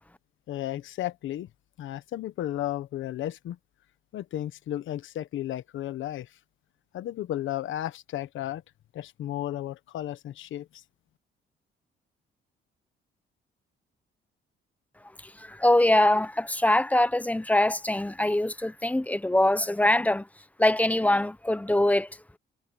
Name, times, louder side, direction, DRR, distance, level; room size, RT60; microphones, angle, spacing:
voice 1, 0.5-1.5 1.8-3.6 4.1-6.3 6.9-8.6 8.9-10.8, left 13 dB, 75° left, 1.3 m, -33 dB
voice 2, 15.4-20.3 20.6-22.1, left 1 dB, 5° left, 1.0 m, -23 dB
cardioid pair, 90°, 20 cm